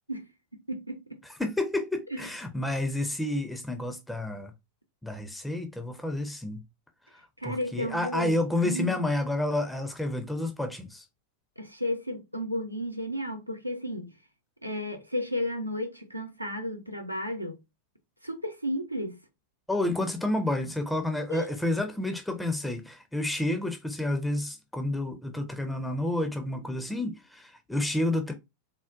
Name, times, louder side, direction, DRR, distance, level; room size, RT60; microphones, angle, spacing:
voice 1, 0.7-1.2 2.1-2.2 7.4-8.3 8.6-9.2 11.6-14.1 14.6-17.6 18.2-19.2 21.3-21.5, left 1 dB, 90° right, 0.6 m, -33 dB
voice 2, 1.4-4.5 5.0-6.6 7.4-11.0 19.7-28.3, left 1 dB, 5° left, 0.4 m, -30 dB
3.7 x 2.0 x 2.5 m
figure-of-eight pair, 90°, 0 cm